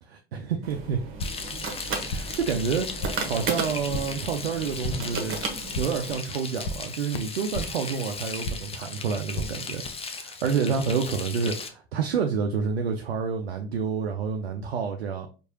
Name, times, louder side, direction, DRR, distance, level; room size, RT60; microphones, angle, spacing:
voice 1, 0.1-1.0 2.1-5.4 5.8-9.8 10.1-15.3, right 6 dB, 80° right, 0.5 m, -29 dB
sound 1, 0.6-6.2, right 4 dB, 40° right, 1.0 m, -34 dB
sound 2, 1.0-1.6 1.8-2.5 2.7-3.4 3.6-4.2 4.5-5.2 5.5-6.1 6.4-7.9 8.2-8.8 9.1-9.9, left 1 dB, 65° left, 0.6 m, -36 dB
Frying (food), 1.2-11.7, left 4 dB, 20° left, 0.6 m, -37 dB
4.6 x 2.5 x 2.7 m
figure-of-eight pair, 65°, 31 cm